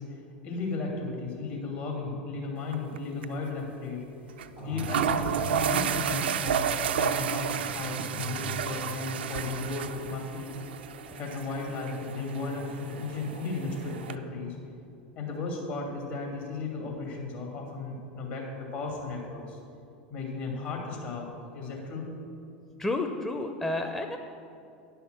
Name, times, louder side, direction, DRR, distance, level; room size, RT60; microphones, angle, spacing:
voice 1, 0.0-6.7 7.0-10.5 11.2-14.5 15.1-19.6 20.1-21.2 21.5-22.1, left 3 dB, 60° left, 0 dB, 2.6 m, -35 dB
sound 1, 2.7-3.0 3.2-3.3 4.4-4.5 4.8-14.2, right 8 dB, 75° right, 0.4 m, -32 dB
sound 2, 4.6-14.4, right 1 dB, 85° left, 2.5 m, -42 dB
voice 2, 22.8-24.2, left 2 dB, 10° left, 4 dB, 0.6 m, -30 dB
10.0 x 5.6 x 6.5 m, 2.6 s
hypercardioid pair, 90°, 6 cm